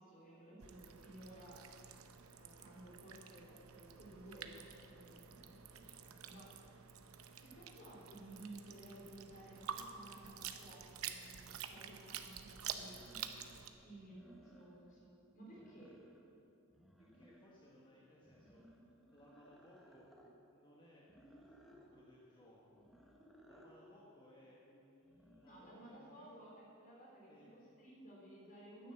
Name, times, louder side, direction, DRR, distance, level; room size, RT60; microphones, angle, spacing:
voice 1, 0.0-1.6 2.4-6.7 7.4-13.0 13.8-15.9 25.4-28.9, right 1 dB, 40° left, -4 dB, 3.6 m, -56 dB
sound 1, 0.6-13.7, right 8 dB, 70° right, 0.7 m, -50 dB
sound 2, 12.6-13.6 14.0-15.0 15.4-16.4 16.7-17.7 18.2-20.4 21.1-21.9 22.7-23.8 25.0-25.7, equal, ahead, 1.1 m, -62 dB
voice 2, 15.6-15.9 17.0-18.6 19.1-20.1 20.5-22.9 23.5-26.3 27.3-27.5, left 1 dB, 20° left, -5 dB, 1.3 m, -64 dB
10.0 x 9.5 x 7.7 m, 2.7 s
head